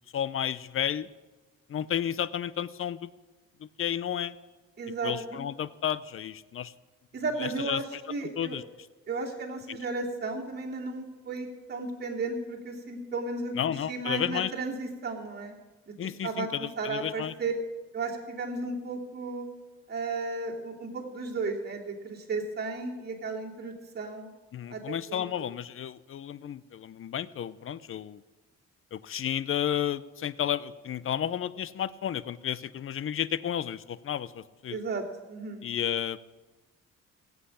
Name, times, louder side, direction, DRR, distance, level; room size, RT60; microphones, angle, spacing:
voice 1, 0.1-1.1 1.7-3.1 3.6-4.4 5.0-6.7 7.4-8.0 8.4-8.6 9.7-9.8 13.5-14.5 16.0-17.3 24.5-28.2 28.9-34.8 35.6-36.2, left 9 dB, 45° left, 18 dB, 0.6 m, -32 dB
voice 2, 4.8-5.4 7.1-7.8 8.1-8.6 9.1-13.5 13.9-15.5 15.9-16.0 16.2-16.5 16.8-17.5 17.9-19.5 19.9-24.3 24.7-25.2 34.7-35.6, right 3 dB, 35° right, -3 dB, 2.9 m, -34 dB
16.0 x 8.2 x 8.5 m, 1.2 s
cardioid pair, 90°, 30 cm